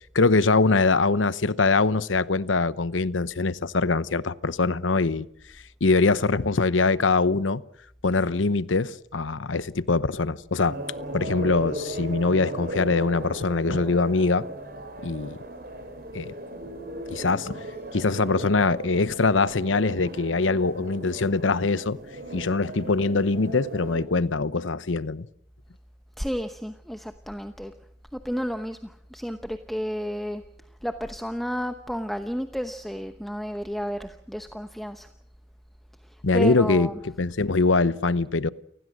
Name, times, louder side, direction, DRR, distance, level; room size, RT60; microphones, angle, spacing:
voice 1, 0.1-5.2 5.8-7.6 8.0-10.8 11.1-14.5 15.0-15.4 16.1-16.3 17.1-17.6 17.9-22.0 22.3-25.3 36.2-36.9 37.2-38.5, left 3 dB, 90° left, 0.9 m, -23 dB
sound 1, 10.6-24.1, right 1 dB, 50° right, 4.0 m, -37 dB
voice 2, 26.2-27.7 28.1-30.4 30.8-35.1 36.0-37.1, equal, ahead, 0.9 m, -32 dB
29.5 x 19.5 x 6.4 m
head